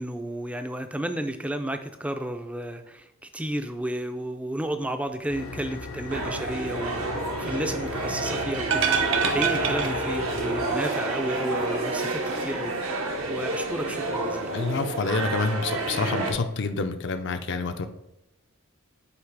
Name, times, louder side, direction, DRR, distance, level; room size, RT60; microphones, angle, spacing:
voice 1, 0.0-14.5, right 1 dB, 5° right, 7 dB, 0.4 m, -32 dB
sound 1, 5.3-10.8, left 3 dB, 85° left, 0.9 m, -37 dB
sound 2, 6.1-16.3, right 2 dB, 90° right, 1.3 m, -29 dB
sound 3, 8.6-10.6 10.8-10.9, right 7 dB, 60° right, 0.7 m, -27 dB
voice 2, 14.5-17.9, left 3 dB, 55° left, 8 dB, 0.5 m, -27 dB
8.2 x 2.9 x 4.7 m, 0.86 s
head